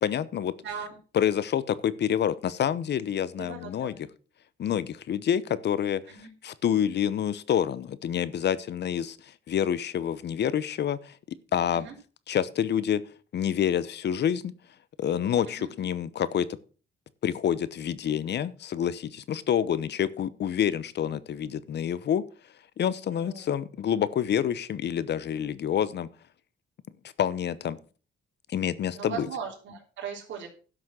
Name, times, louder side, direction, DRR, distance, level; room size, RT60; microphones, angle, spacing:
voice 1, 0.0-0.5 1.1-4.0 4.6-11.9 12.3-13.0 13.3-14.5 15.0-16.5 17.2-22.2 22.8-26.1 27.2-27.8 28.5-29.3, left 9 dB, 60° left, 17 dB, 0.9 m, -28 dB
voice 2, 0.6-1.0 3.4-4.0 6.1-6.3 11.7-11.9 15.5-15.7 23.1-23.5 28.9-30.5, right 7 dB, 70° right, -2 dB, 3.5 m, -38 dB
11.5 x 6.2 x 6.1 m, 0.37 s
cardioid pair, 90°, 20 cm